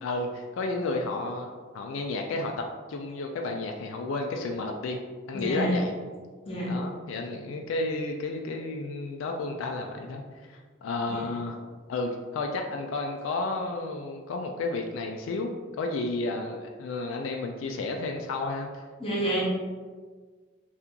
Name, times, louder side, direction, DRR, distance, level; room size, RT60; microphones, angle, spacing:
voice 1, 0.0-5.0 5.3-5.9 6.6-11.6 11.9-15.5 15.8-18.8, left 2 dB, 85° left, 2 dB, 0.3 m, -32 dB
voice 2, 5.3-5.7 6.5-6.7 11.1-11.2 19.0-19.4, right 1 dB, 30° left, -5 dB, 0.8 m, -29 dB
2.8 x 2.4 x 3.6 m, 1.5 s
head